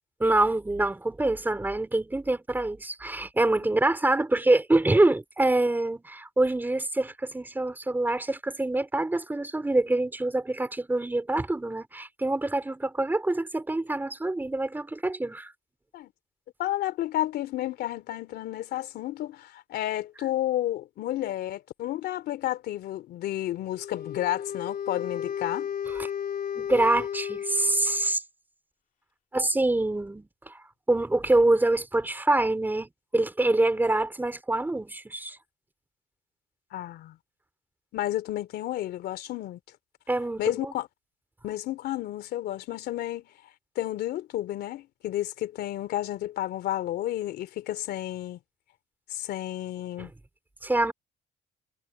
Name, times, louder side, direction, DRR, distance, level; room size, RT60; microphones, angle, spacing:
voice 1, 0.2-15.5 25.9-26.1 26.6-28.2 29.3-30.6 30.9-35.4 40.1-40.7 50.0-50.1 50.6-50.9, right 2 dB, 10° right, 4.4 m, -25 dB
voice 2, 16.6-25.7 36.7-37.2 37.9-39.6 40.4-40.9 41.4-43.3 43.7-48.4 49.1-50.1, left 13 dB, 70° left, 3.1 m, -31 dB
Wind instrument woodwind instrument, 23.8-28.1, left 9 dB, 55° left, 2.8 m, -34 dB
cardioid pair, 110°, 17 cm